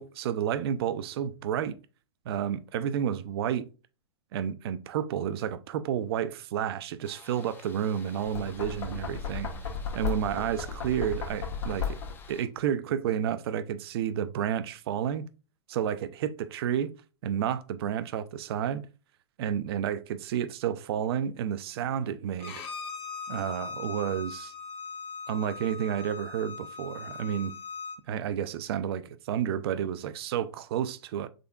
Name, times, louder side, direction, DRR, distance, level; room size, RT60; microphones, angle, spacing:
voice 1, 0.0-1.8 2.3-3.7 4.3-9.5 9.9-12.0 12.3-15.2 15.7-16.9 17.2-18.9 19.4-22.5 23.3-24.5 25.3-27.5 28.1-31.3, right 9 dB, 55° right, 0.4 m, -31 dB
sound 1, 7.0-12.5, left 5 dB, 15° left, 0.4 m, -53 dB
Knock, 8.2-12.3, left 6 dB, 75° left, 1.0 m, -35 dB
Bowed string instrument, 22.4-28.0, left 4 dB, 40° left, 0.9 m, -40 dB
3.8 x 3.3 x 2.3 m
hypercardioid pair, 110°, 15 cm